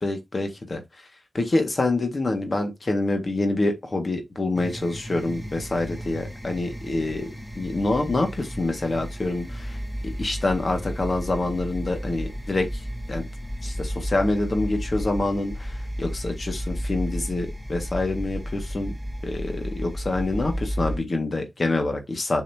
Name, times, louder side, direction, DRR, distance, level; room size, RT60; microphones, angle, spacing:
voice 1, 0.0-0.8 1.3-7.3 7.6-12.8 13.1-13.2 13.6-18.9 19.2-22.4, left 2 dB, 55° left, 1.8 m, -26 dB
sound 1, 4.6-21.0, equal, 5° left, 1.3 m, -33 dB
7.2 x 5.5 x 2.8 m
cardioid pair, 45°, 0 cm